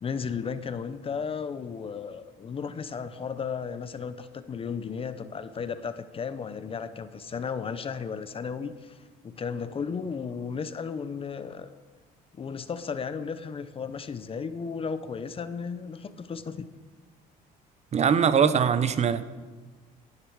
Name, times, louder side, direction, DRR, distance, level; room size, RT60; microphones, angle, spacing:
voice 1, 0.0-9.0 9.2-11.7 12.3-16.7, left 6 dB, 35° left, 12 dB, 0.8 m, -34 dB
voice 2, 17.9-19.2, right 7 dB, 40° right, 13 dB, 0.8 m, -22 dB
17.0 x 9.8 x 4.8 m, 1.3 s
cardioid pair, 110°, 17 cm